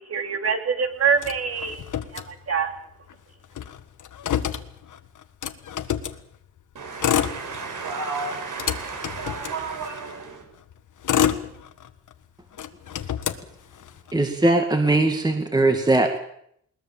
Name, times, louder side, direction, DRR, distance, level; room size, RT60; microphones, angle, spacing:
voice 1, 0.0-2.8, right 6 dB, 45° right, 6 dB, 3.0 m, -25 dB
Motor vehicle (road), 1.2-2.8 3.1-3.2 3.4-6.2 6.8-7.9 8.3-10.1 10.7-12.1 12.5-14.1, left 9 dB, 65° left, 1.6 m, -28 dB
voice 2, 6.7-10.4, right 4 dB, 70° right, 3 dB, 5.8 m, -32 dB
voice 3, 14.1-16.2, right 2 dB, 10° right, 4 dB, 2.3 m, -20 dB
21.0 x 21.0 x 7.6 m, 0.70 s
cardioid pair, 120°, 33 cm